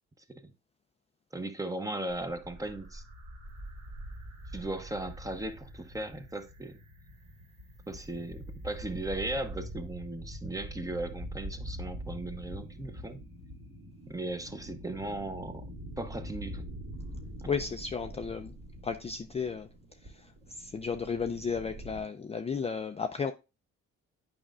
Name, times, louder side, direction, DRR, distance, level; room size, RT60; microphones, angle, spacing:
voice 1, 1.3-3.0 4.5-6.8 7.9-13.2 14.1-15.7 16.0-16.6 17.4-17.5, right 2 dB, 10° right, 0.8 m, -37 dB
sound 1, 2.1-22.0, equal, 60° right, 2.1 m, -44 dB
voice 2, 17.5-18.5 18.8-19.7 20.0-23.3, left 5 dB, 20° left, 0.4 m, -34 dB
8.8 x 5.1 x 2.3 m
cardioid pair, 90°, 30 cm